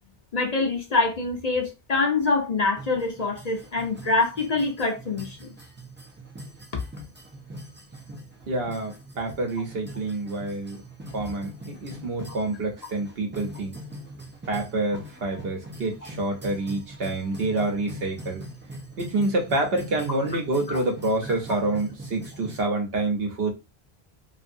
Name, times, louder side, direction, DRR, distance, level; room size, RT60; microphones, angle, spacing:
voice 1, 0.3-5.5 20.7-20.8, left 3 dB, 45° left, 0.7 m, -25 dB
sound 1, 2.8-22.7, right 1 dB, 20° right, 0.3 m, -42 dB
voice 2, 8.5-10.8 11.1-13.7 14.5-18.4 19.0-23.5, right 2 dB, 70° right, 1.1 m, -27 dB
2.7 x 2.6 x 2.6 m
omnidirectional pair, 1.0 m